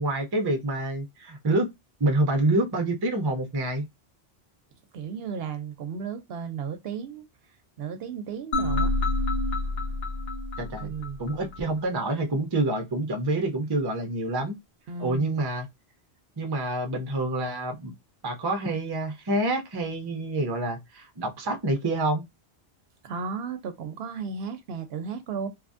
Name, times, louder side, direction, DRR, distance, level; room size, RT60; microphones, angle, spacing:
voice 1, 0.0-1.7 2.0-3.8 10.6-10.9 11.2-14.6 15.0-15.7 16.4-17.9 18.2-22.2, right 2 dB, 30° right, 0.5 m, -27 dB
voice 2, 4.9-7.2 7.8-8.9 10.8-11.2 14.9-15.3 23.0-25.5, right 6 dB, 70° right, 0.8 m, -34 dB
sound 1, 8.5-11.6, left 2 dB, 65° left, 1.0 m, -28 dB
2.8 x 2.4 x 2.4 m
omnidirectional pair, 1.1 m